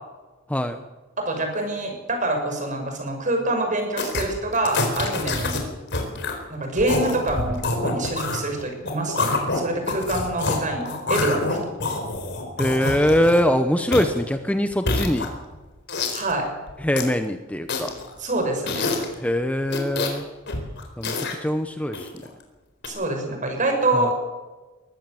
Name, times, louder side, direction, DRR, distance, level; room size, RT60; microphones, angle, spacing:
voice 1, 0.5-0.8 12.6-15.3 16.8-17.9 19.2-20.2 21.0-21.1 21.4-22.0 23.9-24.1, equal, 5° left, 8 dB, 1.0 m, -22 dB
voice 2, 1.2-5.6 6.5-11.7 16.1-16.5 18.2-18.9 22.9-24.1, right 2 dB, 40° right, 4 dB, 6.1 m, -26 dB
sound 1, 4.0-4.2 4.5-5.6 5.9-6.4 6.8-10.6 10.9-13.5 13.9-14.2 14.7-15.5 15.9-16.3 16.7-17.1 17.7-18.1 18.7-19.1 19.7-20.2 20.5-21.4 21.9-22.3 22.8-22.9, left 3 dB, 60° left, 4.2 m, -26 dB
22.0 x 16.0 x 7.8 m, 1.2 s
head